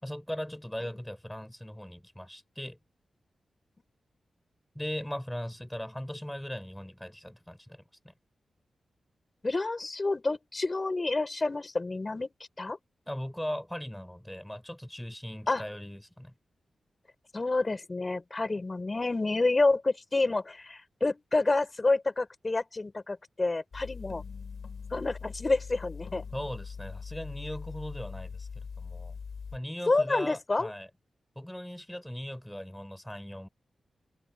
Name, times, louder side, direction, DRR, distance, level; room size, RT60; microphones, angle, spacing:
voice 1, 0.0-2.8 4.7-8.1 13.1-16.3 26.3-29.2 29.5-30.9 31.4-33.5, equal, 5° left, 4.2 m, -39 dB
voice 2, 9.4-12.3 12.6-12.8 15.5-15.6 17.3-24.2 24.9-26.2 29.9-30.7, left 3 dB, 30° left, 4.4 m, -28 dB
sound 1, 23.7-29.6, left 5 dB, 65° left, 3.2 m, -42 dB
cardioid pair, 75°, 0 cm